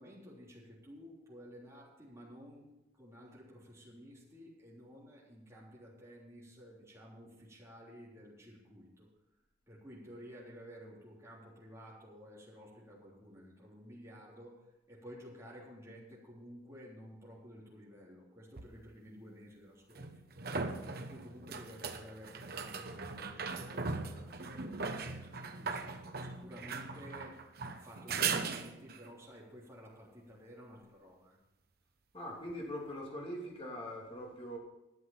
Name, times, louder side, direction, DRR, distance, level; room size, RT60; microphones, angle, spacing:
voice 1, 0.0-9.1 9.7-14.6 14.9-20.4 20.9-25.9 26.2-31.4, equal, 15° right, -6 dB, 3.5 m, -53 dB
sound 1, 18.6-18.7 19.9-29.1 32.5-32.6, right 4 dB, 50° right, 0.9 m, -39 dB
voice 2, 32.1-34.6, equal, 30° left, -2 dB, 3.0 m, -42 dB
12.0 x 7.8 x 7.3 m, 0.96 s
head